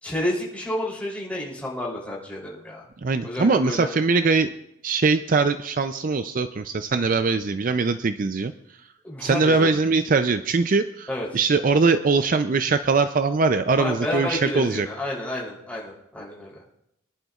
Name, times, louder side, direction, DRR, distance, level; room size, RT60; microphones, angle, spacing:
voice 1, 0.0-2.8 3.2-3.9 9.0-9.8 11.1-11.3 13.8-16.6, left 1 dB, 5° left, -4 dB, 3.2 m, -30 dB
voice 2, 3.0-4.5 4.8-8.5 9.2-11.1 11.3-14.9, right 4 dB, 40° right, 10 dB, 0.4 m, -21 dB
24.5 x 11.0 x 2.4 m, 0.81 s
head